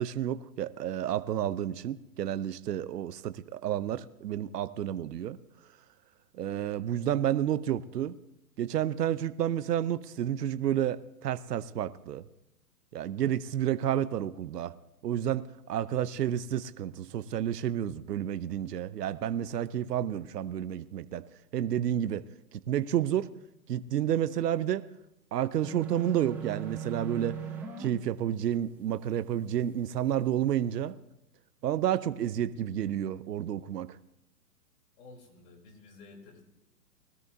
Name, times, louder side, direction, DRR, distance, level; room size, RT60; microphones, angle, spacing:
voice 1, 0.0-5.4 6.3-8.2 8.6-12.2 12.9-14.7 15.0-21.2 21.5-22.2 22.5-23.3 23.7-24.8 25.3-27.4 27.8-30.9 31.6-34.0, right 10 dB, 75° right, 13 dB, 0.8 m, -30 dB
sound 1, 25.6-27.9, right 8 dB, 5° right, 0.6 m, -38 dB
voice 2, 35.0-36.4, left 3 dB, 45° left, 0 dB, 3.6 m, -52 dB
21.0 x 13.0 x 2.7 m, 0.87 s
hypercardioid pair, 140°, 48 cm